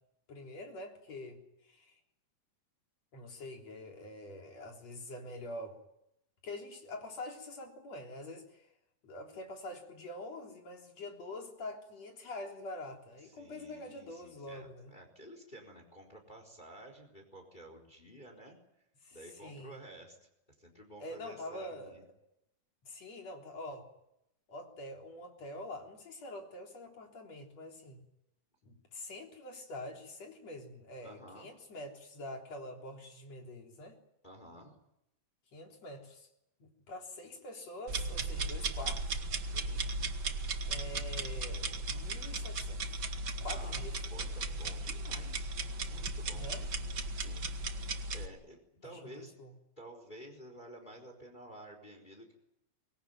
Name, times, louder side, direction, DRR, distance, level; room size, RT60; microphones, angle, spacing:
voice 1, 0.3-1.4 1.7-2.0 3.1-5.8 6.4-8.7 9.0-14.9 19.0-19.8 21.0-21.9 22.8-23.9 24.5-28.0 28.6-34.0 35.5-36.3 36.6-39.2 40.7-43.0 43.4-44.0 46.3-46.7 49.0-49.5, left 1 dB, 45° left, 1 dB, 4.7 m, -45 dB
voice 2, 13.2-18.6 19.1-20.3 20.6-22.1 31.0-31.5 34.2-34.8 39.4-39.8 43.5-43.8 44.1-46.5 47.1-47.5 48.1-49.3 49.8-52.3, right 1 dB, 10° left, 4 dB, 4.1 m, -52 dB
sound 1, 37.9-48.3, right 2 dB, 70° right, 1.0 m, -36 dB
24.0 x 20.5 x 9.3 m, 0.83 s
omnidirectional pair, 4.3 m